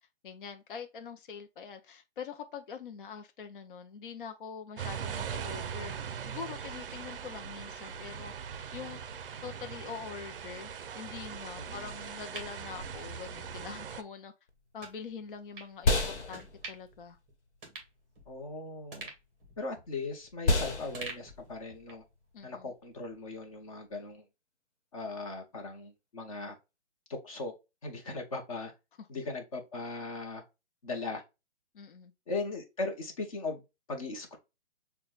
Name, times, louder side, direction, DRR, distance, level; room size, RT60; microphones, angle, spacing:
voice 1, 0.2-5.9 6.3-8.3 8.7-9.0 9.4-14.3 14.7-17.2 22.3-22.7 31.7-32.1, left 6 dB, 50° left, 0.6 m, -44 dB
sound 1, 4.8-14.0, right 7 dB, 55° right, 0.5 m, -40 dB
voice 2, 11.6-11.9 18.3-19.1 19.6-22.0 22.4-24.2 24.9-26.6 27.1-27.5 27.8-28.7 29.1-30.4 30.8-31.2 32.3-33.6 33.9-34.4, left 3 dB, 30° left, 0.9 m, -38 dB
sound 2, 11.9-13.5 13.9-14.0 14.8-15.0 15.5-15.7 16.3-17.0 17.3-17.4 17.6-18.5 18.9-20.5 20.9-22.1 22.4-22.5, right 3 dB, 10° right, 0.9 m, -47 dB
sound 3, 14.5-24.1, left 2 dB, 75° left, 1.2 m, -34 dB
5.9 x 2.2 x 2.3 m
hypercardioid pair, 170°, 34 cm